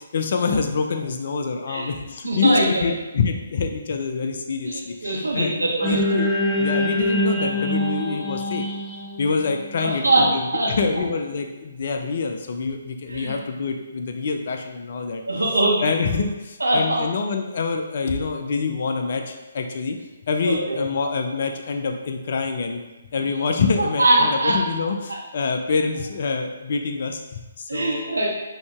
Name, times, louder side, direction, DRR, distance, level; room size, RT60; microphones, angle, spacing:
voice 1, 0.1-5.5 5.9-6.3 6.6-8.6 9.2-15.2 15.8-20.0 20.3-22.8 23.1-28.1, left 4 dB, 45° left, 4 dB, 0.5 m, -26 dB
voice 2, 2.2-2.8 4.6-6.0 9.8-10.3 10.5-10.7 13.1-13.4 15.3-15.9 16.6-17.0 20.4-20.8 24.0-24.6 27.7-28.3, right 2 dB, 70° right, -3 dB, 1.2 m, -21 dB
sound 1, 5.8-10.2, left 1 dB, 5° right, 0.7 m, -24 dB
5.2 x 2.8 x 3.4 m, 1.1 s
figure-of-eight pair, 135°, 0 cm